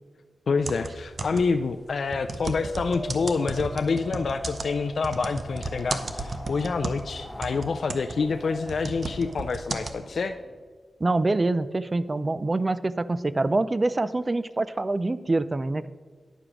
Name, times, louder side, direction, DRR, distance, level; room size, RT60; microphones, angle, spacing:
voice 1, 0.5-10.4, left 4 dB, 65° left, 8 dB, 0.3 m, -27 dB
sound 1, 0.6-1.6 2.1-7.1 7.4-10.0, right 3 dB, 50° right, 0.7 m, -34 dB
Wind, 2.2-10.7, left 1 dB, 15° left, 1.3 m, -42 dB
voice 2, 11.0-15.9, right 2 dB, 30° right, 15 dB, 0.3 m, -25 dB
9.8 x 5.0 x 6.0 m, 1.5 s
wide cardioid pair, 100°, 0 cm